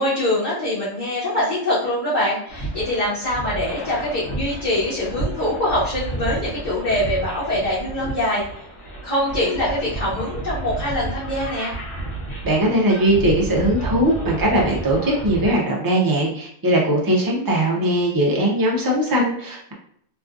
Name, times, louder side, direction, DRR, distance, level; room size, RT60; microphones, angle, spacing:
voice 1, 0.0-8.4 9.0-11.7, left 1 dB, 35° left, -12 dB, 1.1 m, -23 dB
sound 1, 2.5-15.6, right 2 dB, 60° left, 1.1 m, -31 dB
voice 2, 12.4-19.7, right 1 dB, 35° right, -2 dB, 0.3 m, -20 dB
3.0 x 2.4 x 2.4 m, 0.67 s
omnidirectional pair, 1.3 m